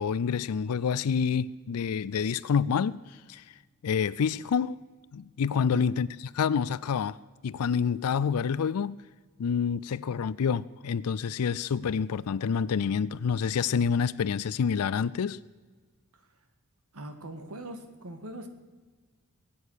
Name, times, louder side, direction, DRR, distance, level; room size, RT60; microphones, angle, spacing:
voice 1, 0.0-3.4 3.8-4.8 5.1-7.2 7.4-9.0 9.4-15.4, left 6 dB, 80° left, 0.4 m, -28 dB
voice 2, 16.9-18.5, right 1 dB, 80° right, 1.9 m, -42 dB
22.5 x 8.6 x 6.5 m
head